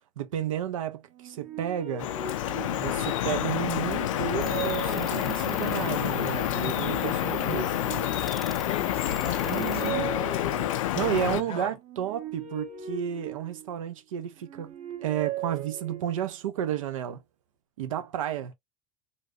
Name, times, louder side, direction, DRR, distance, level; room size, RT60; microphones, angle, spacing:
voice 1, 0.2-2.1 2.7-7.8 9.4-10.1 10.9-14.7 15.0-17.2 17.8-18.5, right 10 dB, 85° right, 0.8 m, -32 dB
sound 1, 1.1-3.2 3.7-5.7 6.4-8.5 9.0-11.0 11.7-13.9 14.4-16.4, right 8 dB, 45° right, 1.2 m, -39 dB
Drip, 2.0-11.4, left 13 dB, 90° left, 0.4 m, -28 dB
sound 2, 4.4-9.9, equal, ahead, 0.3 m, -42 dB
voice 2, 8.7-10.7 11.3-11.8, left 10 dB, 35° left, 0.6 m, -38 dB
3.1 x 2.6 x 2.5 m
hypercardioid pair, 95°, 17 cm